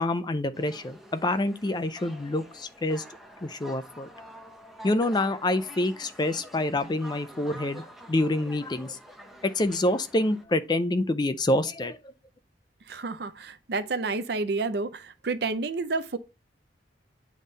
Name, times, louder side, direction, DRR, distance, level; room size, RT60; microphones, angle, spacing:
voice 1, 0.0-3.0 3.4-4.1 4.8-9.0 9.4-12.1, left 1 dB, 25° left, 0.4 m, -27 dB
sound 1, 0.5-10.4, right 1 dB, ahead, 0.7 m, -48 dB
voice 2, 12.9-16.2, right 3 dB, 60° right, 0.6 m, -30 dB
8.4 x 3.6 x 4.0 m
head